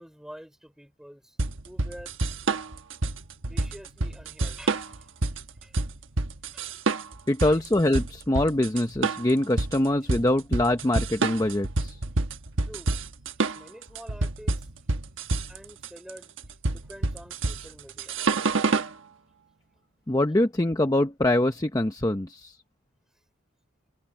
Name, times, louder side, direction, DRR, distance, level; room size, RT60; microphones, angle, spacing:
voice 1, 0.0-1.4 1.6-2.1 3.5-5.1 5.6-5.8 6.5-6.7 7.4-7.6 12.6-13.0 13.5-14.7 15.5-16.4 16.6-18.2, equal, 5° right, 4.0 m, -47 dB
sound 1, 1.4-18.9, right 3 dB, 85° right, 1.2 m, -28 dB
voice 2, 7.3-12.0 20.1-22.6, left 1 dB, 20° left, 0.8 m, -24 dB
head